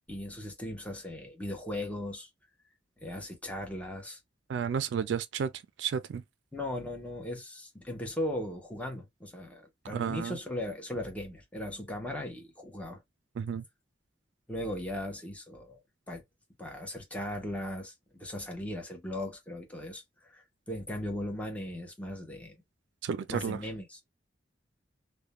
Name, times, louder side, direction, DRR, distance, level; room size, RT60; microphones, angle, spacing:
voice 1, 0.1-2.3 3.0-4.2 6.5-13.0 14.5-15.8 16.1-16.2 16.6-22.6 23.3-24.0, left 1 dB, 10° left, 0.7 m, -38 dB
voice 2, 4.5-5.5 5.8-6.2 9.9-10.4 13.4-13.6 23.0-23.6, right 7 dB, 75° right, 0.3 m, -32 dB
2.3 x 2.1 x 2.9 m
head